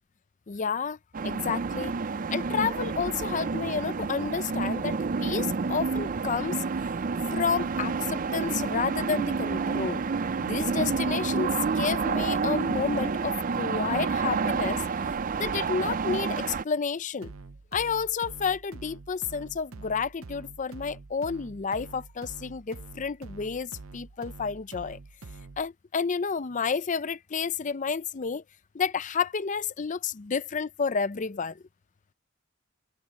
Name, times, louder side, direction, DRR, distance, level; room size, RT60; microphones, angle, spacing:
voice 1, 0.5-1.0 1.2-1.9 2.3-6.6 7.3-10.0 10.4-14.8 15.4-17.3 17.7-25.0 25.6-28.4 28.7-31.6, left 5 dB, 35° left, 0.5 m, -30 dB
sound 1, 1.1-16.6, right 4 dB, 40° right, 0.4 m, -29 dB
sound 2, 17.2-25.7, right 3 dB, 85° right, 0.8 m, -46 dB
head